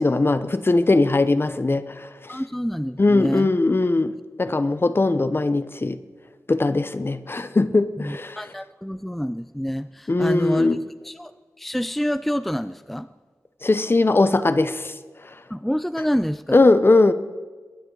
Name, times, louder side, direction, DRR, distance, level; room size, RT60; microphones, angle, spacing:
voice 1, 0.0-2.4 3.0-4.1 4.4-6.0 6.5-8.4 10.1-10.8 13.6-14.9 16.5-17.1, left 2 dB, 40° left, 0.8 m, -20 dB
voice 2, 2.3-3.5 8.0-10.8 11.0-11.3 11.6-13.1 15.5-16.6, equal, 5° left, 0.4 m, -27 dB
22.5 x 10.5 x 4.0 m
wide cardioid pair, 55°, 6 cm